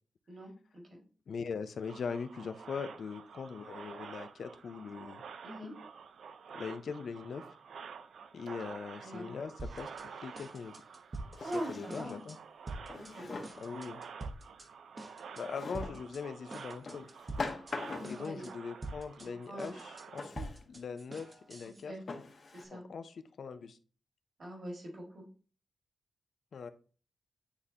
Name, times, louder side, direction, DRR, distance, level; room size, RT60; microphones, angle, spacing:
voice 1, 0.3-1.0 5.4-5.7 9.0-9.3 11.4-12.2 12.9-13.5 17.9-18.5 19.5-19.8 21.6-22.0 22.5-22.8 24.4-25.2, equal, 45° right, -1 dB, 1.9 m, -42 dB
voice 2, 1.3-5.2 6.5-7.4 8.3-9.9 10.2-10.7 11.4-12.4 13.6-14.0 15.3-17.1 18.0-21.9 22.7-23.8 26.5-26.7, left 5 dB, 60° left, 10 dB, 0.4 m, -41 dB
sound 1, 1.8-20.3, right 6 dB, 75° right, 0.4 m, -50 dB
sound 2, 9.6-10.1 10.4-11.6 11.9-12.4 12.7-13.1 13.4-14.7 15.0-15.4 15.7-16.2 16.5-17.8 18.0-18.5 18.8-21.8, right 2 dB, 25° right, 0.9 m, -45 dB
Drawer open or close, 10.0-10.1 11.3-12.2 12.9-13.7 15.5-16.0 16.9-18.3 20.2-20.6 21.3-21.4 22.1-22.6, left 3 dB, 45° left, 0.9 m, -42 dB
9.7 x 3.6 x 2.8 m, 0.39 s
wide cardioid pair, 155°, 0 cm